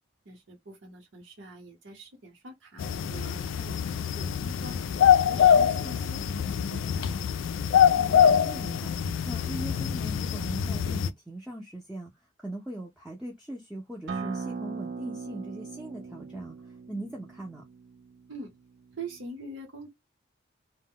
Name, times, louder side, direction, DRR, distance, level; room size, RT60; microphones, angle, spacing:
voice 1, 0.2-4.8 5.2-7.0 18.3-18.5 18.9-19.9, right 2 dB, 80° right, 0.9 m, -44 dB
sound 1, 2.8-11.1, left 8 dB, 80° left, 0.3 m, -24 dB
voice 2, 8.0-8.9 9.2-12.1 12.4-16.6 16.9-17.6, right 1 dB, 5° right, 0.5 m, -40 dB
Acoustic guitar, 14.1-19.3, right 4 dB, 60° right, 0.4 m, -39 dB
2.1 x 2.1 x 3.6 m
head